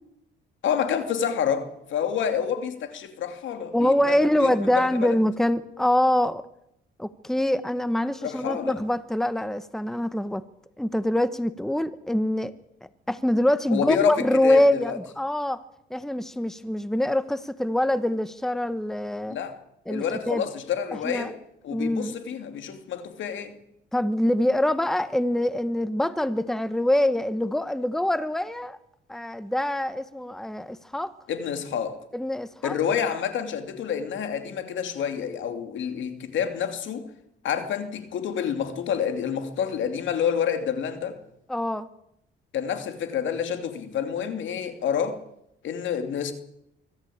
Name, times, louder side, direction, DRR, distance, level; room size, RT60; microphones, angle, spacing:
voice 1, 0.6-5.2 8.2-8.8 13.7-15.0 19.3-19.6 19.9-21.4 21.6-23.6 31.3-32.0 32.6-37.0 37.4-41.2 42.5-45.2 45.6-46.3, left 8 dB, 75° left, 2.9 m, -28 dB
voice 2, 3.7-6.4 7.0-10.4 10.8-12.5 12.8-15.6 15.9-19.4 19.9-20.5 21.0-21.3 21.7-22.2 23.9-28.8 29.1-31.1 32.1-32.7 41.5-41.9, left 1 dB, ahead, 1.1 m, -24 dB
24.0 x 14.0 x 8.7 m
cardioid pair, 90°, 20 cm